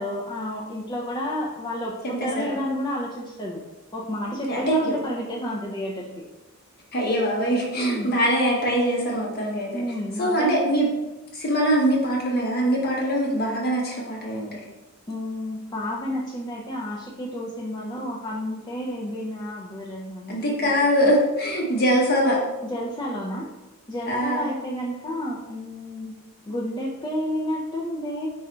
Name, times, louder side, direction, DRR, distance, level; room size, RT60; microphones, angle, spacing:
voice 1, 0.0-3.6 3.9-6.2 7.7-8.1 9.7-10.7 15.1-20.7 21.0-21.1 22.6-23.5 23.9-26.2 26.5-28.3, equal, 20° left, -3 dB, 0.4 m, -30 dB
voice 2, 2.0-2.6 4.5-5.0 6.9-9.8 10.2-10.9 11.3-14.6 20.3-22.4 24.1-24.5, equal, 45° left, -3 dB, 0.7 m, -23 dB
3.8 x 2.4 x 4.2 m, 1.0 s
head